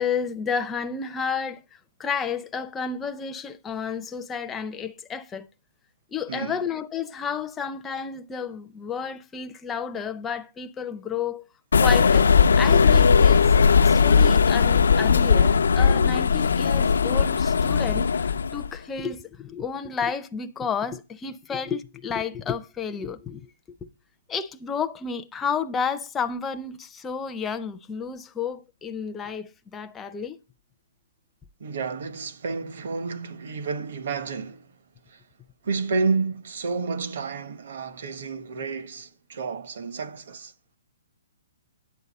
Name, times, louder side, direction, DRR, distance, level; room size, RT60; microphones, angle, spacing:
voice 1, 0.0-1.6 2.0-5.5 6.1-11.4 11.8-12.3 12.6-13.5 13.8-23.5 24.3-30.4, left 6 dB, 10° left, 0.5 m, -31 dB
voice 2, 6.3-6.6 31.6-34.7 35.1-35.2 35.6-40.5, right 4 dB, 55° right, 1.1 m, -30 dB
sound 1, 11.7-18.7, left 6 dB, 90° left, 0.4 m, -18 dB
9.6 x 8.0 x 4.1 m
hypercardioid pair, 170°, 0 cm